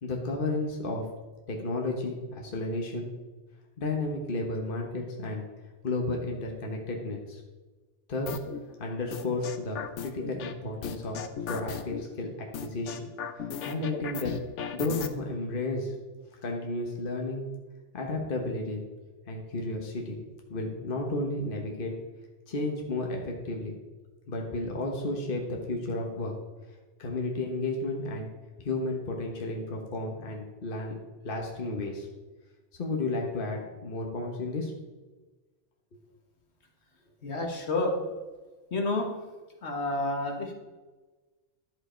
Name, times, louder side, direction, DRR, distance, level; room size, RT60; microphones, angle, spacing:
voice 1, 0.0-1.0 1.5-3.1 3.8-5.5 5.8-7.4 8.1-8.4 8.8-11.2 11.5-13.1 13.4-14.3 14.7-15.9 16.4-17.5 17.9-18.8 19.3-20.2 20.5-21.9 22.5-23.7 24.3-26.3 27.0-28.3 28.6-30.9 31.2-32.1 32.8-34.7, left 2 dB, 50° left, 1 dB, 1.5 m, -32 dB
sound 1, 8.3-8.6 9.1-10.5 10.8-12.0 12.5-15.1, left 7 dB, 85° left, 1.1 m, -36 dB
voice 2, 37.2-38.0 38.7-39.1 39.6-40.5, left 2 dB, 70° left, 2 dB, 1.8 m, -29 dB
11.5 x 7.8 x 4.4 m, 1.2 s
omnidirectional pair, 1.2 m